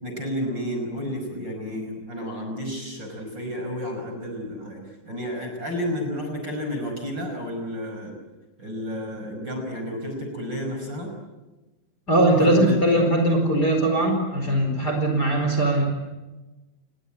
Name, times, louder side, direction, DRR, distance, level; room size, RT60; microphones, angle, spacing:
voice 1, 0.0-8.1 8.6-11.1 12.3-13.1, equal, 25° right, 3 dB, 5.6 m, -31 dB
voice 2, 12.1-15.9, right 1 dB, 20° left, 3 dB, 4.7 m, -20 dB
29.5 x 21.0 x 8.9 m, 1.1 s
omnidirectional pair, 5.3 m